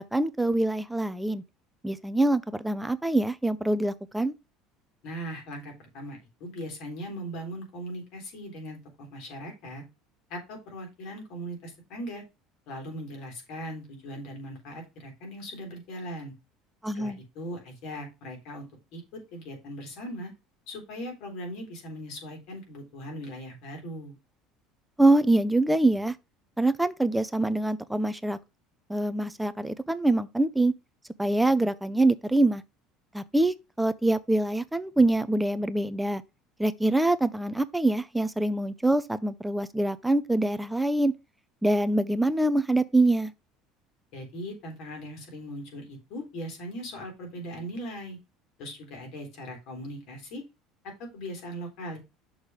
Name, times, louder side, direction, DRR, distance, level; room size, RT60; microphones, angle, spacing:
voice 1, 0.0-1.4 1.8-4.3 16.8-17.2 25.0-26.2 26.6-28.4 28.9-30.7 31.2-32.6 33.1-36.2 36.6-41.1 41.6-43.3, right 2 dB, 5° right, 0.5 m, -24 dB
voice 2, 5.0-9.8 10.3-12.2 12.7-16.3 16.9-18.7 18.9-20.3 20.7-24.2 44.1-48.2 48.6-50.4 51.0-52.0, equal, 60° left, 3.5 m, -39 dB
6.5 x 3.6 x 6.1 m
cardioid pair, 135°, 0 cm